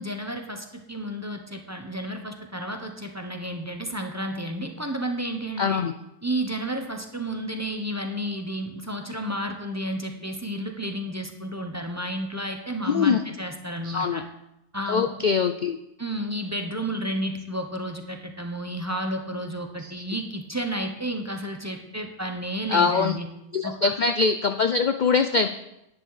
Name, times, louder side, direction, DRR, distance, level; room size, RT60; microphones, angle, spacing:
voice 1, 0.0-5.8 6.2-14.2 14.7-15.1 16.0-23.3 23.6-23.9, right 1 dB, 15° right, 4 dB, 0.9 m, -31 dB
voice 2, 5.6-5.9 12.9-13.2 13.8-14.2 14.9-15.8 19.8-19.9 22.7-23.1 23.5-25.5, left 5 dB, 60° left, 8 dB, 0.4 m, -23 dB
10.5 x 9.8 x 4.9 m, 0.86 s
omnidirectional pair, 1.4 m